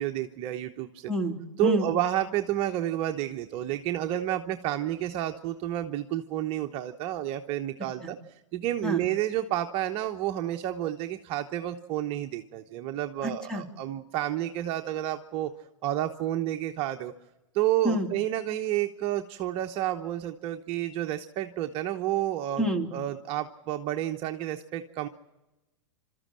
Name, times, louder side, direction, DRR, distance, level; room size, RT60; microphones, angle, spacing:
voice 1, 0.0-1.1 1.6-8.2 8.5-15.5 15.8-17.1 17.5-25.1, right 13 dB, 35° right, 5 dB, 0.9 m, -30 dB
voice 2, 1.1-1.9 8.8-9.0 13.2-13.6 17.8-18.1 22.6-22.9, equal, 5° left, 7 dB, 2.7 m, -28 dB
29.0 x 13.5 x 7.6 m, 1.0 s
hypercardioid pair, 125°, 16 cm